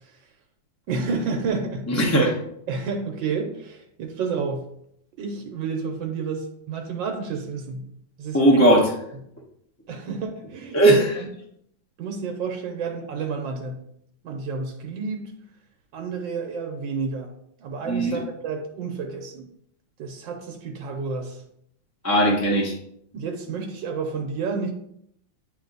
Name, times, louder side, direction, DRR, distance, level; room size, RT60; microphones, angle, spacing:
voice 1, 0.9-2.2 2.7-4.6 5.2-7.8 8.2-8.6 9.9-10.8 11.2-11.3 12.0-13.8 14.2-15.3 15.9-17.3 17.6-19.5 20.0-21.4 23.1-24.7, right 5 dB, 85° right, 3 dB, 1.6 m, -30 dB
voice 2, 1.9-2.4 8.3-8.9 10.7-11.2 17.9-18.2 22.0-22.7, right 1 dB, 15° left, -2 dB, 0.6 m, -18 dB
9.3 x 3.3 x 3.9 m, 0.72 s
omnidirectional pair, 2.0 m